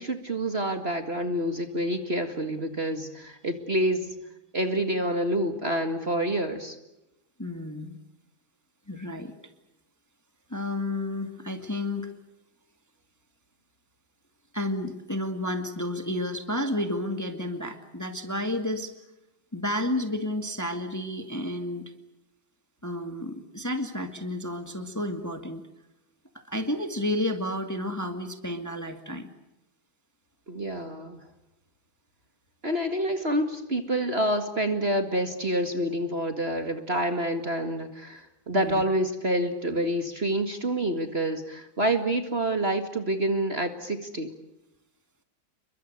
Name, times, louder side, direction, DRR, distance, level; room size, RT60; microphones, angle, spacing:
voice 1, 0.0-4.2 4.5-6.8 30.5-31.2 32.6-44.3, right 1 dB, 30° right, 7 dB, 2.1 m, -27 dB
voice 2, 7.4-8.0 8.9-9.3 10.5-12.1 14.5-18.9 19.5-21.9 22.8-25.6 26.3-29.3 38.5-38.8, left 1 dB, 10° left, 7 dB, 2.0 m, -31 dB
29.5 x 23.5 x 6.7 m, 0.91 s
omnidirectional pair, 2.2 m